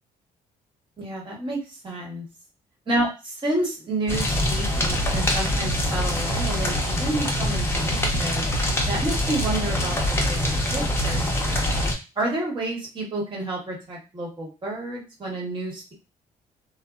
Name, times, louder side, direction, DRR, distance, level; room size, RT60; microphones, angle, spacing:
voice 1, 1.0-2.3 2.9-8.5 8.8-11.7 12.1-15.9, right 1 dB, 30° right, -3 dB, 1.3 m, -30 dB
sound 1, 4.1-11.9, left 1 dB, 15° left, 0.7 m, -24 dB
2.7 x 2.1 x 2.4 m, 0.29 s
cardioid pair, 100°, 16 cm